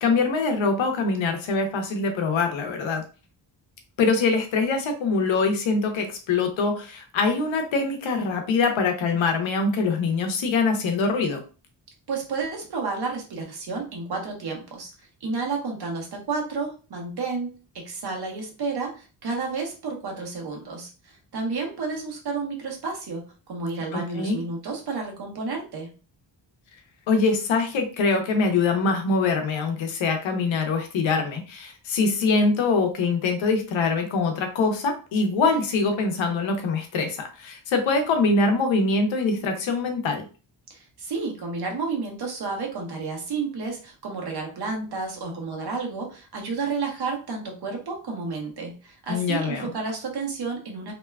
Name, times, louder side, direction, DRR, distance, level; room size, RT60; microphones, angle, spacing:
voice 1, 0.0-3.0 4.0-11.4 23.9-24.4 27.1-40.2 49.1-49.7, left 4 dB, 80° left, 5 dB, 0.8 m, -23 dB
voice 2, 12.1-14.9 15.2-17.6 17.8-23.2 23.5-25.9 40.7-50.9, right 4 dB, 55° right, 1 dB, 1.1 m, -31 dB
2.8 x 2.2 x 2.2 m, 0.35 s
cardioid pair, 80°, 46 cm